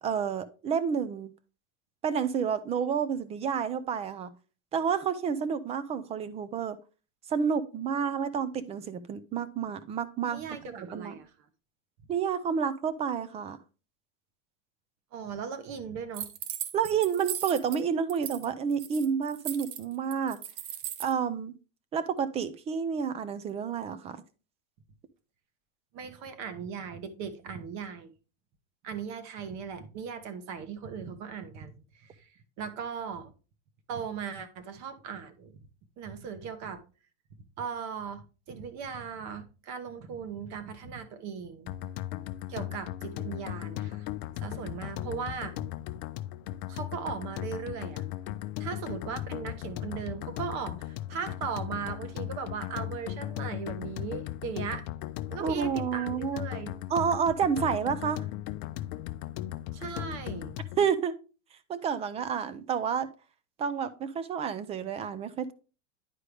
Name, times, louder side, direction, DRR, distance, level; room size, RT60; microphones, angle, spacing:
voice 1, 0.0-1.3 2.0-4.3 4.7-6.8 7.3-11.1 12.1-13.6 16.7-20.4 21.0-21.5 21.9-24.2 55.4-56.4 56.9-58.2 60.8-61.1 61.7-63.1 63.6-65.5, right 7 dB, 20° right, 0.3 m, -30 dB
voice 2, 10.3-11.3 15.1-16.3 25.9-28.1 28.8-32.3 32.6-33.3 33.9-35.5 36.0-36.8 37.6-41.7 42.5-44.1 44.4-45.7 46.7-48.0 48.6-54.9 55.3-56.8 59.7-60.6, right 6 dB, 45° right, 1.1 m, -38 dB
sound 1, 16.1-17.8 18.1-18.5 18.7-21.1, right 11 dB, 70° right, 0.9 m, -37 dB
sound 2, 41.7-60.9, left 14 dB, 55° left, 0.6 m, -37 dB
9.9 x 4.8 x 3.3 m
supercardioid pair, 135°, 38 cm